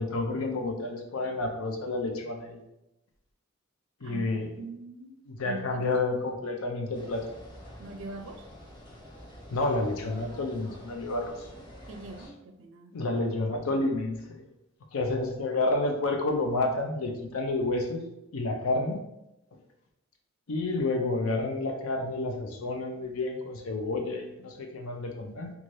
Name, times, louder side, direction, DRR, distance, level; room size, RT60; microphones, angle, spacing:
voice 1, 0.0-2.6 4.0-4.5 5.3-7.3 9.5-11.5 12.9-14.5 14.9-18.0 18.3-19.0 20.5-25.5, left 2 dB, 80° left, 3 dB, 0.5 m, -30 dB
voice 2, 4.6-5.9 7.8-8.5 11.9-12.9, right 2 dB, 65° right, 5 dB, 0.4 m, -42 dB
sound 1, 6.9-12.3, equal, 20° left, 0.6 m, -48 dB
2.6 x 2.3 x 3.1 m, 0.89 s
head